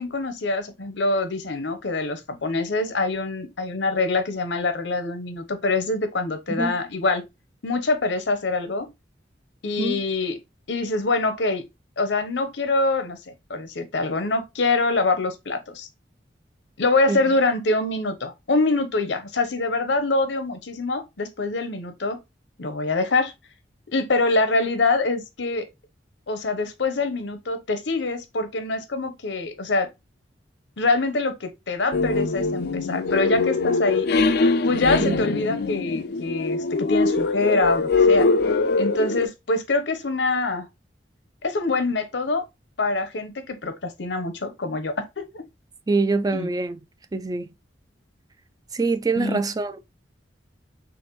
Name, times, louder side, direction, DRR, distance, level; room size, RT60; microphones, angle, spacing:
voice 1, 0.0-7.2 7.6-8.9 9.6-10.4 10.7-11.6 12.0-13.2 13.5-15.9 16.8-22.2 22.6-23.3 23.9-25.7 26.3-29.9 30.8-34.1 34.6-38.3 38.8-40.7 41.4-42.5 42.8-45.0 45.3-45.4 46.3-46.5 49.2-49.4, left 3 dB, 85° left, 0.9 m, -24 dB
sound 1, 31.9-39.3, left 3 dB, 65° left, 0.5 m, -22 dB
voice 2, 45.9-46.8 47.1-47.5 48.7-49.8, right 3 dB, 20° right, 0.3 m, -24 dB
6.3 x 2.6 x 3.0 m
head